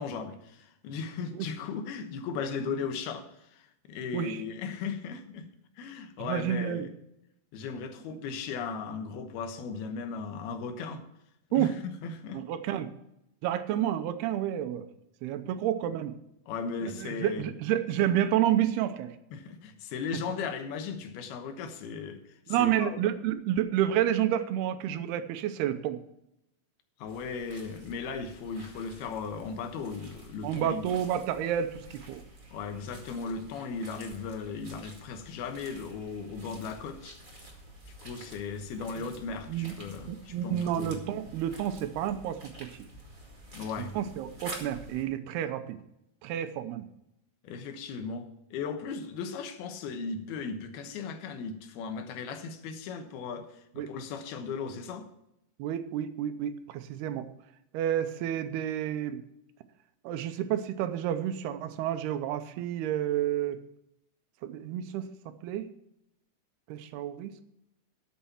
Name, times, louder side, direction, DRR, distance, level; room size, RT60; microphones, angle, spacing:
voice 1, 0.0-5.5 5.8-6.9 7.5-11.0 11.5-12.4 15.4-15.5 16.5-17.5 19.3-23.0 27.0-31.0 32.5-37.2 37.9-41.0 43.5-44.0 47.4-55.1, left 5 dB, 80° left, 8 dB, 3.0 m, -37 dB
voice 2, 6.2-6.9 11.5-11.7 12.3-12.9 13.4-14.9 15.2-16.2 17.0-19.1 22.5-26.0 30.4-32.2 39.5-39.7 40.1-42.7 43.9-45.8 46.2-46.9 53.8-53.9 55.6-57.3 57.7-59.2 60.0-63.6 64.4-65.1 65.4-65.7 66.7-67.4, right 11 dB, 85° right, 10 dB, 2.9 m, -30 dB
sound 1, 27.1-45.0, right 1 dB, 25° right, 1.2 m, -49 dB
13.0 x 7.6 x 5.8 m, 0.83 s
omnidirectional pair, 4.5 m